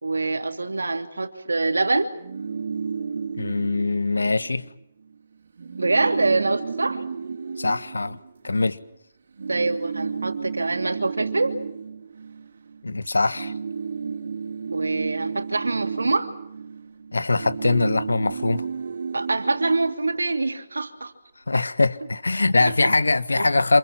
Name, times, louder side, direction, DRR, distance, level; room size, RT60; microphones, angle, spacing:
voice 1, 0.0-2.1 5.8-7.0 9.5-11.5 14.7-16.3 19.1-21.1 22.6-22.9 23.4-23.6, right 3 dB, 90° right, 2.8 m, -25 dB
sound 1, 2.1-4.7 5.0-5.2 5.4-8.8 9.4-12.9 13.2-20.8, right 5 dB, 65° right, 4.1 m, -33 dB
voice 2, 3.4-4.7 7.6-8.2 8.4-8.8 12.8-13.5 17.1-18.6 21.5-23.8, left 3 dB, 90° left, 1.6 m, -22 dB
28.0 x 28.0 x 6.0 m
figure-of-eight pair, 140°, 0 cm